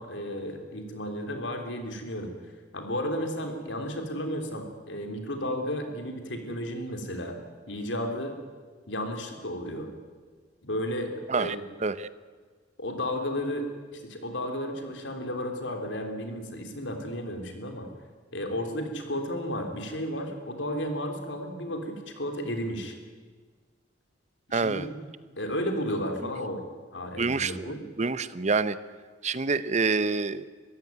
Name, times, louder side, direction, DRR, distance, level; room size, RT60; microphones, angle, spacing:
voice 1, 0.0-2.3 2.7-7.4 7.7-8.3 8.9-9.9 10.6-11.6 12.8-17.9 18.3-23.0 24.5-24.9 25.4-26.7 26.9-27.8, equal, 85° left, 5 dB, 3.6 m, -33 dB
voice 2, 24.5-24.9 27.2-28.8 29.2-30.5, right 4 dB, 40° right, 15 dB, 0.8 m, -27 dB
23.0 x 15.0 x 9.3 m, 1.5 s
head